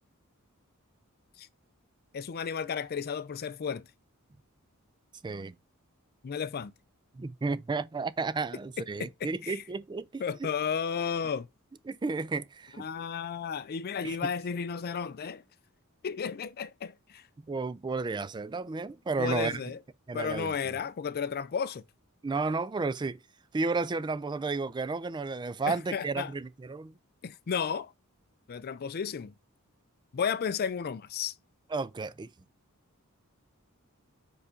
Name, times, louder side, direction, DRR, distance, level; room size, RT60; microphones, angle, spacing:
voice 1, 2.1-3.9 6.2-6.7 9.0-9.6 10.2-11.5 12.8-15.4 16.0-17.2 19.2-19.8 20.1-21.8 25.7-26.3 27.2-27.9 28.5-29.3 30.1-31.3, left 6 dB, 45° left, 0.4 m, -33 dB
voice 2, 5.2-5.6 7.1-10.5 11.9-12.9 14.0-14.2 17.5-19.6 20.1-20.7 22.2-23.2 23.5-26.9 31.7-32.3, right 4 dB, 20° right, 0.4 m, -32 dB
4.8 x 4.8 x 5.0 m
head